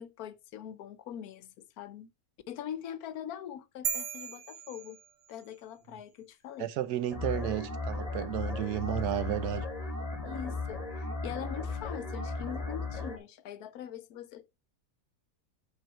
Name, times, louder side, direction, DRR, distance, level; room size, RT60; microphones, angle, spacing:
voice 1, 0.0-2.1 2.5-5.0 5.3-6.7 10.2-14.5, left 10 dB, 75° left, 1.2 m, -42 dB
sound 1, 3.8-5.6, right 7 dB, 60° right, 1.2 m, -37 dB
voice 2, 6.6-9.7, right 11 dB, 85° right, 1.3 m, -32 dB
sound 2, 7.1-13.2, left 3 dB, 25° left, 2.0 m, -36 dB
8.9 x 4.6 x 4.4 m
omnidirectional pair, 1.6 m